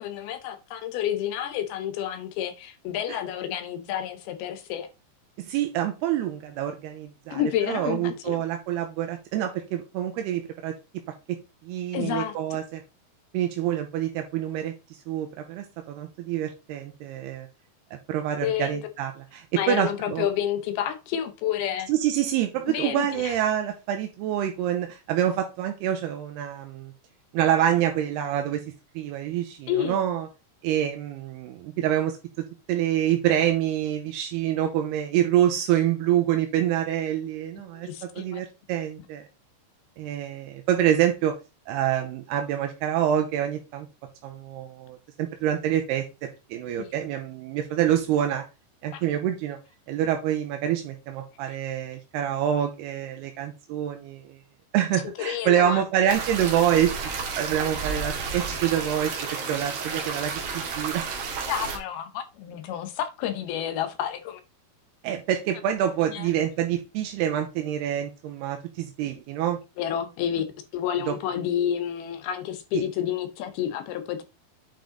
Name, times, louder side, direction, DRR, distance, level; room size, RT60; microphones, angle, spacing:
voice 1, 0.0-4.9 7.3-8.4 11.9-12.4 18.4-18.8 19.6-21.9 22.7-23.3 29.7-30.0 37.7-38.4 46.8-46.9 48.9-49.0 55.2-55.8 61.5-64.4 66.1-66.3 69.8-70.4 70.7-74.2, left 10 dB, 75° left, 2.7 m, -29 dB
voice 2, 5.4-7.4 7.7-10.7 11.6-12.8 13.3-14.7 15.1-17.5 17.9-20.3 21.9-26.9 27.3-28.6 29.0-30.3 30.6-37.9 38.2-39.3 40.0-41.3 41.7-43.9 44.2-46.1 46.5-48.4 48.8-49.6 49.9-54.4 54.7-57.0 57.4-59.1 59.5-61.1 65.0-69.6 71.1-71.2, right 11 dB, 80° right, 2.8 m, -26 dB
sound 1, 56.1-61.8, right 5 dB, 55° right, 2.4 m, -32 dB
9.0 x 5.3 x 3.8 m
omnidirectional pair, 4.8 m